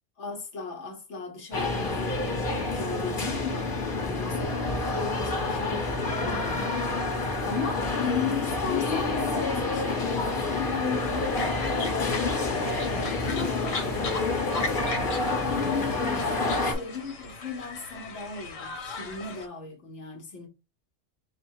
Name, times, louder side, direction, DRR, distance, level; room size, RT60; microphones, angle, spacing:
voice 1, 0.2-14.1 14.5-20.5, left 5 dB, 65° left, 1.2 m, -36 dB
sound 1, 1.5-16.7, left 3 dB, 45° left, 1.2 m, -28 dB
sound 2, 10.8-19.5, left 4 dB, 90° left, 1.3 m, -38 dB
4.4 x 2.1 x 4.6 m
omnidirectional pair, 1.3 m